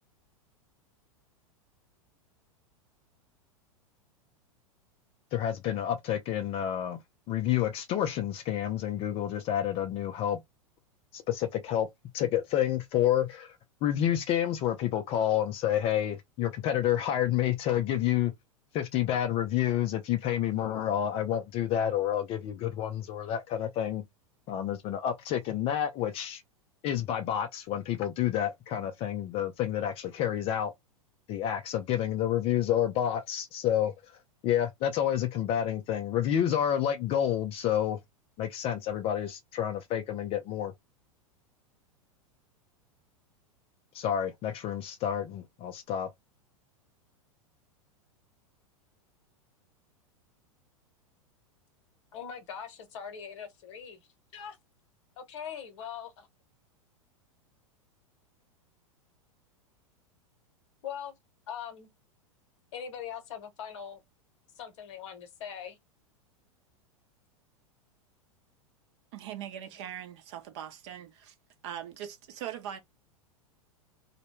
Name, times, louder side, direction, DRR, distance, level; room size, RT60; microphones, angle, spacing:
voice 1, 5.3-7.0 7.3-10.4 11.1-11.9 12.1-13.6 13.8-18.3 18.7-24.0 24.5-26.4 26.8-30.7 31.3-33.9 34.4-38.0 38.4-40.7 43.9-46.1, left 10 dB, 35° left, 0.4 m, -29 dB
voice 2, 52.1-54.0 54.3-54.6 55.2-56.1 60.8-61.1 61.5-61.9 62.7-64.0 64.6-65.8, left 8 dB, 55° left, 0.9 m, -41 dB
voice 3, 69.1-71.3 71.6-72.8, right 10 dB, 50° right, 0.7 m, -41 dB
2.2 x 2.1 x 3.0 m
figure-of-eight pair, 95°, 18 cm